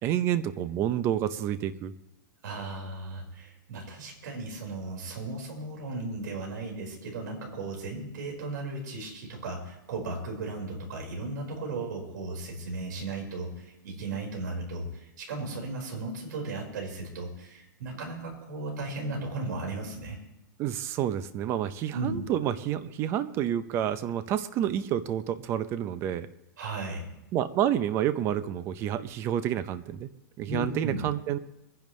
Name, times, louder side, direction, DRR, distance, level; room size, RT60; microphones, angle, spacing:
voice 1, 0.0-1.9 20.6-26.3 27.3-30.1 30.4-31.4, right 10 dB, 25° right, 13 dB, 0.6 m, -29 dB
voice 2, 2.4-20.2 21.9-22.2 26.6-27.1 30.5-31.0, right 2 dB, 65° right, 0 dB, 4.9 m, -36 dB
23.0 x 10.5 x 3.2 m, 0.88 s
supercardioid pair, 160°, 11 cm